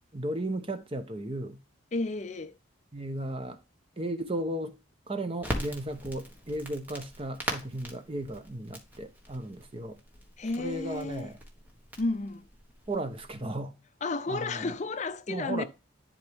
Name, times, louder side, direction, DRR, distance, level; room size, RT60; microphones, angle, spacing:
voice 1, 0.1-1.6 2.9-3.6 4.0-4.8 5.1-10.0 10.6-11.4 12.9-13.7 14.3-14.7 15.3-15.6, right 1 dB, 25° right, 0.8 m, -35 dB
voice 2, 1.9-2.5 10.4-11.3 12.0-12.4 14.0-15.6, left 3 dB, 35° left, 0.5 m, -32 dB
Crackle, 5.4-13.3, equal, 10° right, 1.5 m, -41 dB
11.0 x 4.3 x 3.5 m
head